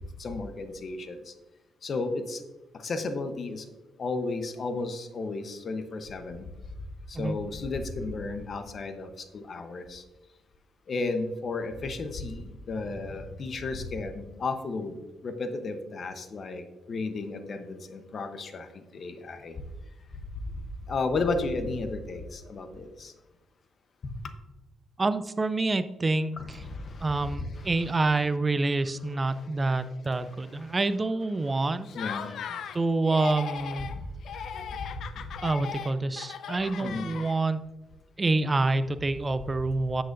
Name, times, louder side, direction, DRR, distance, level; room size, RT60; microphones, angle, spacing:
voice 1, 0.2-1.2 1.8-2.4 2.8-3.6 4.0-6.4 7.1-9.1 9.3-10.0 10.9-15.0 15.2-16.6 16.9-18.7 18.9-19.5 20.9-23.1 26.4-27.9 31.9-32.4 36.8-37.1, left 3 dB, 50° left, 8 dB, 0.9 m, -33 dB
voice 2, 25.0-26.6 27.0-31.9 32.7-33.9 35.4-37.6 38.2-40.0, right 3 dB, 25° right, 12 dB, 0.5 m, -27 dB
Laughter, 31.9-32.8 33.1-34.0 34.3-37.6, left 8 dB, 70° left, 0.5 m, -38 dB
10.0 x 7.7 x 2.6 m, 1.1 s
cardioid pair, 85°, 0 cm